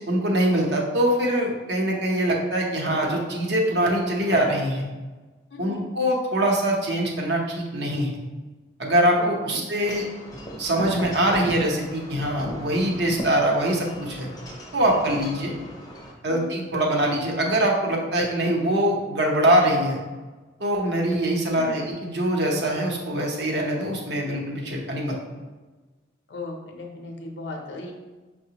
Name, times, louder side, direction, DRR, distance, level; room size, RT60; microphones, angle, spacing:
voice 1, 0.1-4.9 5.6-8.1 8.8-10.0 10.6-14.3 14.7-15.5 16.2-20.0 20.6-25.1, right 1 dB, 65° right, -1 dB, 0.7 m, -23 dB
voice 2, 5.5-5.9 9.2-9.6 16.2-16.5 21.5-21.8 26.3-27.9, left 2 dB, 70° left, 0 dB, 0.6 m, -37 dB
Wind chime / Wind, 9.8-16.1, equal, 20° left, 0.5 m, -37 dB
5.7 x 2.1 x 2.8 m, 1.2 s
head